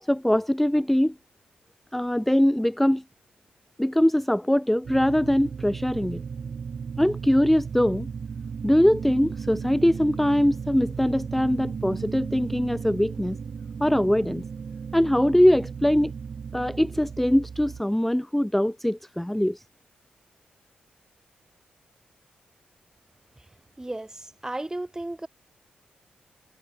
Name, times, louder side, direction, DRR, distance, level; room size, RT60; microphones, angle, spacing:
voice 1, 0.0-1.1 1.9-3.0 3.8-6.2 7.0-8.1 8.6-13.4 13.8-14.4 14.9-16.1 16.5-19.6, equal, 5° left, 0.5 m, -22 dB
sound 1, 4.8-17.8, right 6 dB, 60° right, 0.9 m, -35 dB
voice 2, 23.8-25.3, right 1 dB, 20° right, 1.5 m, -34 dB
supercardioid pair, 50°, 3 cm